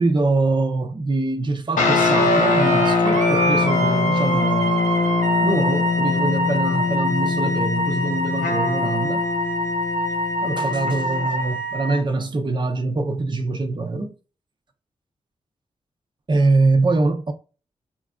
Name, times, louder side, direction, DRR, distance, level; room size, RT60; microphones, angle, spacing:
voice 1, 0.0-4.9 5.4-9.2 10.4-14.1 16.3-17.3, right 3 dB, 35° right, 0.6 m, -23 dB
sound 1, 1.8-11.5, left 4 dB, 80° left, 0.7 m, -22 dB
Wind instrument woodwind instrument, 2.1-12.0, right 1 dB, 70° right, 0.8 m, -25 dB
4.3 x 2.5 x 2.2 m
cardioid pair, 50°, 13 cm